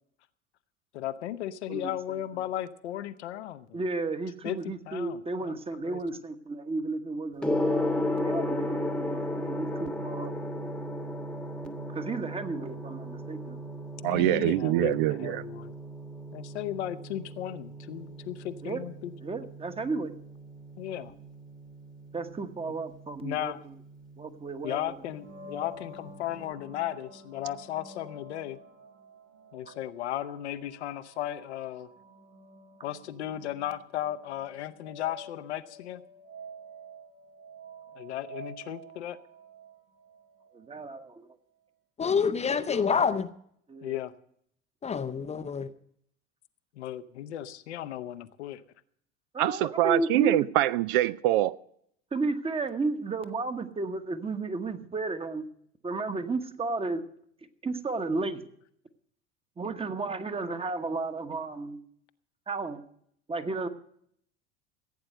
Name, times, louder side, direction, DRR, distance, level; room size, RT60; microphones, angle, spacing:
voice 1, 0.9-3.8 4.4-5.6 5.8-6.0 14.0-15.7 16.3-19.1 20.8-21.1 23.2-23.6 24.6-28.6 29.5-31.9 32.8-36.0 37.9-39.2 43.8-44.1 46.8-48.6, left 12 dB, 65° left, 0.9 m, -35 dB
voice 2, 1.7-2.2 3.7-7.5 8.2-10.3 11.9-13.6 14.1-14.2 14.6-15.1 18.6-18.8 19.2-20.1 22.1-23.7 24.2-25.0 40.5-41.3 42.7-42.8 43.7-44.0 49.3-50.5 52.1-55.4 55.8-57.0 57.4-58.4 59.6-61.8 62.5-62.8 63.3-63.7, right 3 dB, 15° right, 1.2 m, -33 dB
Gong, 7.4-26.4, left 1 dB, 5° left, 1.2 m, -35 dB
voice 3, 14.0-15.4 49.4-51.5, right 15 dB, 50° right, 0.5 m, -24 dB
sound 1, 25.0-40.7, right 1 dB, 85° right, 4.5 m, -49 dB
voice 4, 42.0-43.3 44.8-45.7, left 6 dB, 20° left, 0.6 m, -27 dB
15.5 x 8.9 x 6.6 m
figure-of-eight pair, 70°, 36 cm